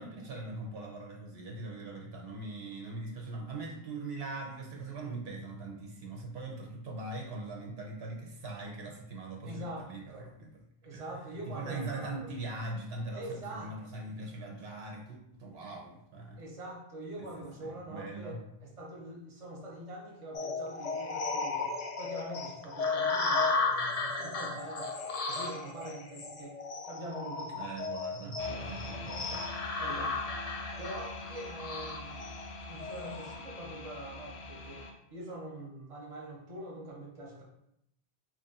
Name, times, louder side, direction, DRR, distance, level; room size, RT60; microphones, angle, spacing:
voice 1, 0.0-10.6 10.9-16.4 17.2-17.3 17.6-18.4 27.5-29.4, right 2 dB, 80° right, 0 dB, 1.0 m, -41 dB
voice 2, 9.4-10.3 10.8-12.3 13.1-13.7 16.4-24.9 25.3-26.6 26.8-27.6 28.2-29.2 29.8-30.2 30.8-32.2 32.7-37.4, right 1 dB, 35° right, -2 dB, 0.9 m, -44 dB
sound 1, 20.3-33.4, left 4 dB, 55° left, 0.4 m, -34 dB
sound 2, 28.4-34.9, left 2 dB, 85° left, 0.8 m, -43 dB
3.0 x 2.5 x 4.0 m, 0.78 s
omnidirectional pair, 1.0 m